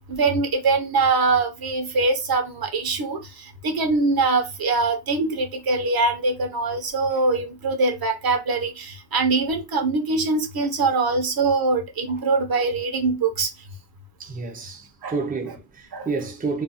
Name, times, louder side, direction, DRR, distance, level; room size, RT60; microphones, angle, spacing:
voice 1, 0.1-3.2 3.6-13.5 15.0-15.2 15.9-16.1, right 3 dB, 65° right, 0.8 m, -23 dB
voice 2, 14.2-16.6, right 4 dB, 20° right, 0.5 m, -30 dB
2.5 x 2.2 x 4.0 m
wide cardioid pair, 170°, 39 cm